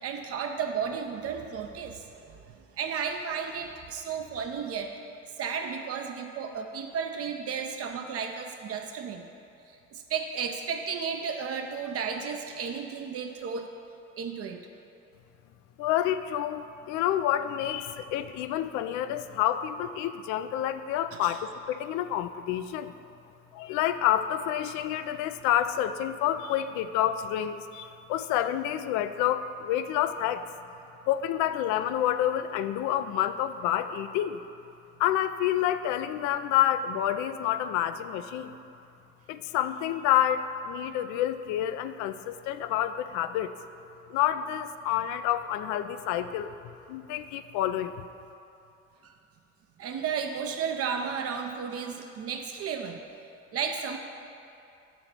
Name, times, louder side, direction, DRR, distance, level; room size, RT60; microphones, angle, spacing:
voice 1, 0.0-4.9 5.4-9.3 9.9-13.7 14.2-14.6 21.1-21.4 49.0-49.1 49.8-53.0 53.5-54.0, right 6 dB, 40° right, 4 dB, 0.5 m, -33 dB
voice 2, 15.8-22.9 23.5-30.5 31.1-34.4 35.0-38.5 39.3-43.5 44.1-46.5 46.9-47.9, left 11 dB, 55° left, 11 dB, 0.4 m, -28 dB
6.8 x 3.8 x 5.9 m, 2.6 s
figure-of-eight pair, 55°, 37 cm